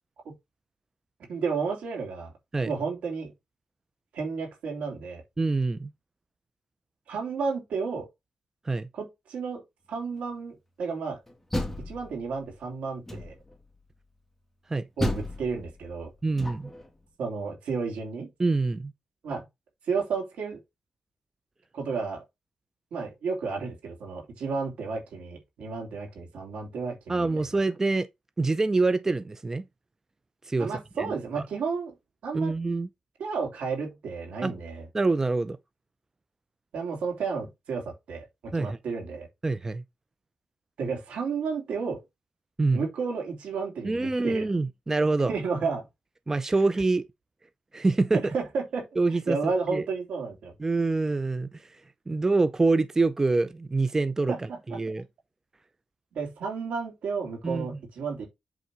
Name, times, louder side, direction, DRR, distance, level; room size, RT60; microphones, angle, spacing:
voice 1, 1.3-2.3 2.6-3.3 4.1-5.2 7.1-8.1 8.9-9.6 9.9-11.2 11.8-13.3 15.0-16.1 17.2-18.3 19.2-19.4 19.9-20.6 21.7-22.2 22.9-27.4 30.6-31.9 32.2-32.5 33.2-34.9 36.7-39.3 40.8-42.0 42.7-44.4 45.3-45.9 48.1-48.9 49.3-50.5 54.3-54.8 56.1-58.3, right 5 dB, 85° right, 3.2 m, -32 dB
voice 2, 5.4-5.9 8.7-8.9 14.7-14.9 16.2-16.7 18.4-18.9 27.1-28.1 28.4-29.6 30.5-30.7 31.0-31.1 32.3-32.9 34.4-34.5 34.9-35.6 38.5-38.8 39.4-39.8 42.6-42.8 43.8-45.3 46.3-47.0 47.7-48.2 49.0-49.8 50.6-51.7 52.1-54.3 54.7-55.0 57.4-57.7, right 3 dB, 25° right, 0.5 m, -25 dB
Door, 11.3-12.5 13.1-13.6 15.0-16.9, left 1 dB, 10° left, 1.8 m, -33 dB
8.0 x 3.8 x 4.9 m
cardioid pair, 85°, 2 cm